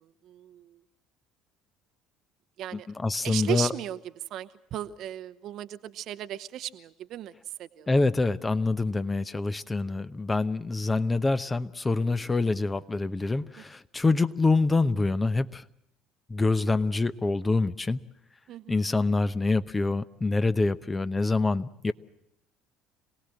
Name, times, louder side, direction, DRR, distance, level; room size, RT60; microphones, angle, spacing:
voice 1, 0.2-0.8 2.6-2.9 3.2-4.0 4.3-7.3 7.6-7.9 18.5-18.8, right 12 dB, 55° right, 12 dB, 0.9 m, -35 dB
voice 2, 2.7-3.7 7.9-15.6 16.3-18.0 18.7-21.9, left 3 dB, 20° left, 13 dB, 0.9 m, -26 dB
26.5 x 18.0 x 7.7 m, 0.82 s
figure-of-eight pair, 60°, 0 cm